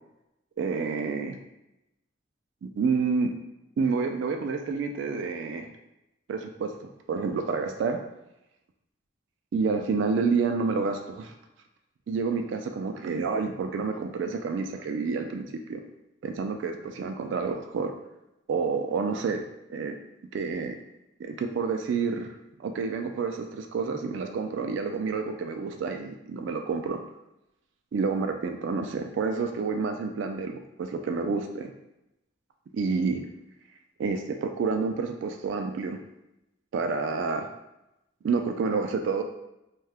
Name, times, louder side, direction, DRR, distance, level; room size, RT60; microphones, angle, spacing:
voice 1, 0.6-1.4 2.6-3.4 3.8-5.7 6.3-6.8 7.1-8.0 9.5-11.3 12.1-15.8 16.2-17.9 18.5-19.4 19.7-20.0 20.3-20.8 21.2-22.3 22.6-27.0 27.9-31.7 32.7-33.2 34.0-36.0 36.7-37.5 38.2-39.2, right 4 dB, 70° right, 5 dB, 0.3 m, -29 dB
2.7 x 2.3 x 3.3 m, 0.90 s
head